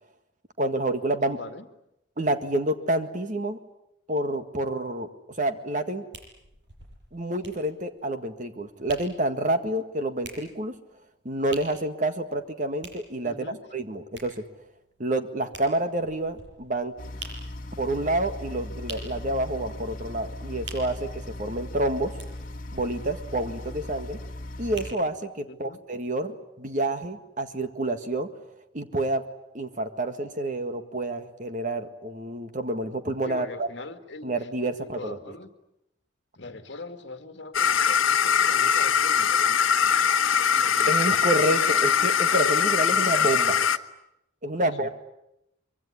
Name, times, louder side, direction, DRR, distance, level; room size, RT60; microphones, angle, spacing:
voice 1, 0.6-1.4 2.2-3.6 4.1-5.1 5.4-6.1 7.1-10.7 11.2-13.3 13.7-14.5 15.0-16.9 17.8-22.1 22.7-24.2 24.6-28.3 28.7-29.3 29.5-33.7 34.2-35.2 40.9-43.5 44.4-44.9, right 1 dB, 40° right, 8 dB, 1.8 m, -28 dB
voice 2, 1.2-1.7 13.2-13.6 25.4-25.8 33.3-34.5 34.8-35.5 36.4-41.0 41.5-42.1 42.6-43.7 44.6-44.9, left 2 dB, 60° left, 8 dB, 2.1 m, -42 dB
sound 1, 6.1-25.4 26.0-26.1, right 3 dB, 60° right, 7.6 m, -48 dB
sound 2, 17.0-24.9, left 1 dB, 45° left, 2.1 m, -38 dB
sound 3, 37.5-43.8, left 7 dB, 85° left, 1.1 m, -22 dB
24.5 x 23.5 x 9.9 m, 0.85 s
head